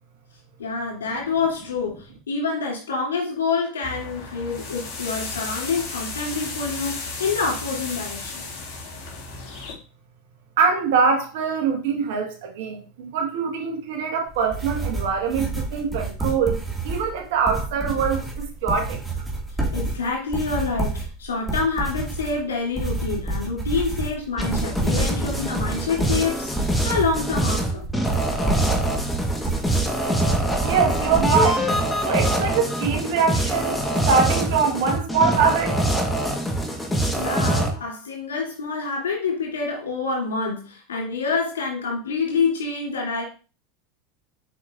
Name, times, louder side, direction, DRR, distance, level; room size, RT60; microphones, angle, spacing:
voice 1, 0.6-8.5 19.7-27.8 37.2-43.2, left 4 dB, 85° left, 3.1 m, -27 dB
sound 1, 3.8-9.7, left 3 dB, 50° left, 3.7 m, -34 dB
voice 2, 10.6-16.6 16.8-19.0 30.6-31.6 32.0-36.1, right 5 dB, 70° right, 1.6 m, -23 dB
sound 2, 14.3-31.3, right 2 dB, 5° right, 2.2 m, -29 dB
sound 3, 24.4-37.7, right 1 dB, 10° left, 1.4 m, -24 dB
7.2 x 5.2 x 2.6 m
hypercardioid pair, 90°, 0 cm